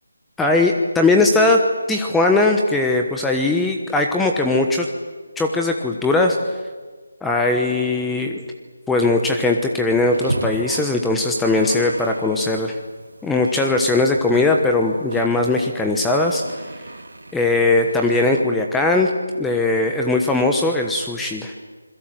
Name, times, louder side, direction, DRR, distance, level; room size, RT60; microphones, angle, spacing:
voice 1, 0.4-1.6 1.9-4.9 5.4-6.4 7.2-8.4 8.9-12.7 13.2-16.4 17.3-19.1 19.4-21.5, left 2 dB, 5° left, 2 dB, 1.2 m, -19 dB
sound 1, 9.9-18.4, right 2 dB, 80° right, 2.6 m, -34 dB
27.0 x 21.5 x 7.9 m, 1.4 s
figure-of-eight pair, 160°, 0 cm